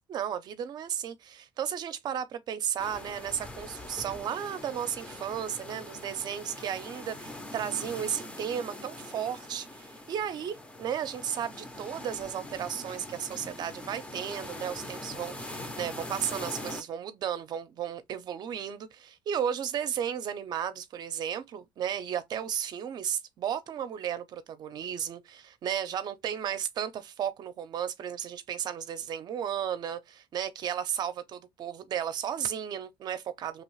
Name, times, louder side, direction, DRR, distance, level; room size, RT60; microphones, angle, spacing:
voice 1, 0.0-33.6, right 9 dB, 50° right, 0.6 m, -34 dB
sound 1, 2.8-16.8, left 1 dB, 15° left, 0.6 m, -42 dB
2.9 x 2.3 x 3.1 m
cardioid pair, 130°, 9 cm